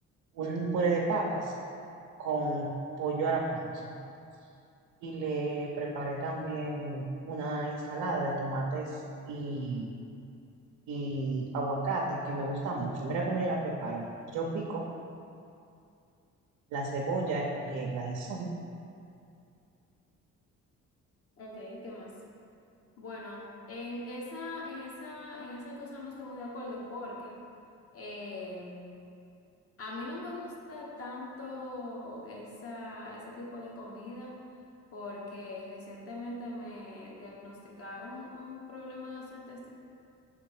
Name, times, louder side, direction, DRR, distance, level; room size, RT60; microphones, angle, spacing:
voice 1, 0.3-1.5 2.2-2.7 3.0-3.9 5.0-10.0 10.9-14.9 16.7-18.5, right 3 dB, 85° right, -1 dB, 0.7 m, -32 dB
voice 2, 21.4-22.2 23.0-27.4 27.9-28.8 29.8-34.4 34.9-39.7, left 2 dB, 50° left, -3 dB, 1.3 m, -41 dB
5.8 x 3.6 x 4.8 m, 2.6 s
cardioid pair, 90°, 30 cm